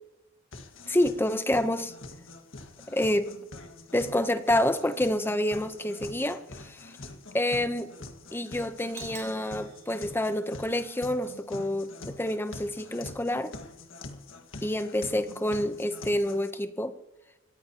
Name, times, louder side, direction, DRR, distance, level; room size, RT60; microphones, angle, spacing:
sound 1, 0.5-16.5, left 2 dB, 70° left, 1.8 m, -45 dB
voice 1, 0.9-1.9 2.9-3.3 3.9-6.9 7.3-7.9 8.3-13.5 14.6-16.9, left 1 dB, 10° left, 10 dB, 0.8 m, -28 dB
Doorbell, 8.9-10.8, right 11 dB, 80° right, 1.6 m, -50 dB
26.5 x 14.5 x 2.9 m, 0.99 s
head